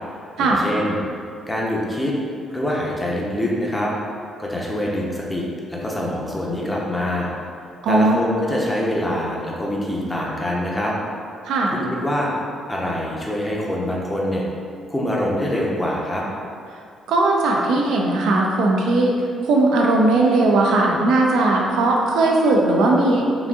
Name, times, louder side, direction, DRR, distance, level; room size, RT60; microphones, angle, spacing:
voice 1, 0.4-1.0 1.5-2.1 2.5-3.9 4.4-7.3 7.9-10.9 11.7-12.3 12.7-14.4 14.9-16.2, left 1 dB, 15° left, -4 dB, 0.6 m, -24 dB
voice 2, 7.8-8.2 11.5-11.7 17.1-19.1 19.4-23.5, right 2 dB, 85° right, -1 dB, 0.4 m, -18 dB
3.8 x 2.5 x 2.3 m, 2.3 s
cardioid pair, 90°, 0 cm